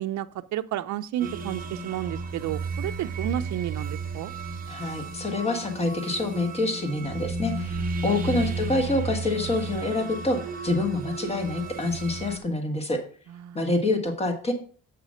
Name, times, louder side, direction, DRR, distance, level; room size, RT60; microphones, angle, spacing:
voice 1, 0.0-4.3 7.8-8.1 13.3-13.6, right 12 dB, 60° right, 9 dB, 0.6 m, -32 dB
sound 1, 1.2-12.4, right 3 dB, 25° right, 0.8 m, -33 dB
voice 2, 4.7-13.0 13.5-14.5, left 2 dB, 20° left, 5 dB, 1.4 m, -27 dB
7.6 x 5.0 x 6.3 m, 0.44 s
cardioid pair, 170°, 33 cm